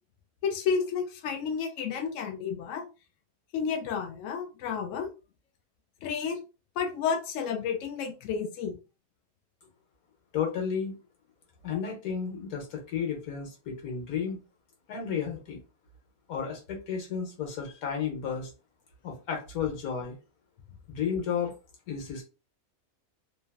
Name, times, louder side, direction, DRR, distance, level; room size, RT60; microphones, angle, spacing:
voice 1, 0.4-2.9 3.5-5.1 6.0-6.4 6.8-8.8, left 6 dB, 70° left, 3 dB, 0.9 m, -31 dB
voice 2, 10.3-11.0 11.6-14.4 14.9-15.6 16.3-18.5 19.0-20.2 20.9-21.5 21.9-22.2, left 7 dB, 90° left, 2 dB, 1.3 m, -32 dB
2.9 x 2.3 x 2.3 m, 0.30 s
omnidirectional pair, 1.5 m